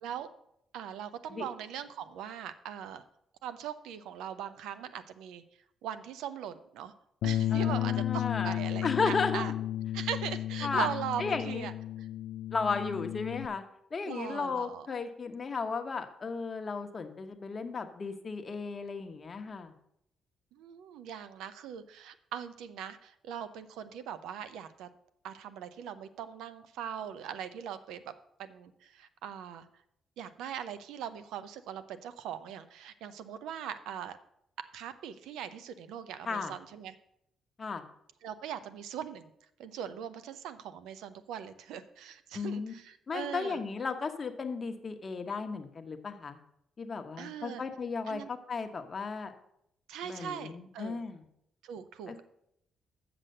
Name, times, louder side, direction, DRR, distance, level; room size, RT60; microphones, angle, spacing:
voice 1, 0.7-3.0 3.4-5.4 5.8-6.9 7.2-9.5 9.9-11.7 12.0-12.1 14.0-14.9 20.5-24.9 25.2-28.0 28.4-29.7 30.2-34.2 34.7-36.9 38.2-39.3 39.6-43.6 47.2-47.6 48.1-48.3 49.9-51.1 51.6-52.2, right 9 dB, 90° right, 12 dB, 0.6 m, -40 dB
Bass guitar, 7.2-13.5, left 12 dB, 80° left, 0.3 m, -33 dB
voice 2, 7.5-9.4 10.6-10.9 11.2-11.7 12.5-13.6 13.9-19.7 36.2-36.5 37.6-37.8 42.3-42.7 43.1-46.4 46.8-49.3 50.0-51.2 52.1-52.2, left 4 dB, 35° left, 7 dB, 1.0 m, -34 dB
7.8 x 6.0 x 6.5 m, 0.75 s
cardioid pair, 90°, 0 cm